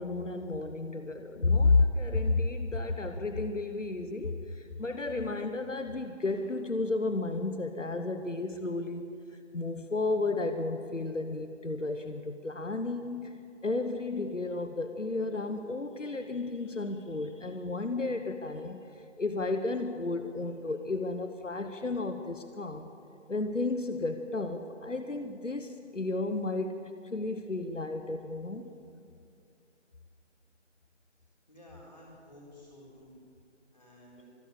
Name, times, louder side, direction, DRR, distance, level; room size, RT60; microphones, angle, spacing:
voice 1, 0.0-9.1 9.5-22.9 23.3-28.7, left 3 dB, 90° left, 8 dB, 1.2 m, -32 dB
voice 2, 31.5-33.2 33.7-34.3, left 1 dB, 35° left, -4 dB, 4.3 m, -53 dB
25.0 x 8.6 x 6.7 m, 2.4 s
figure-of-eight pair, 175°, 36 cm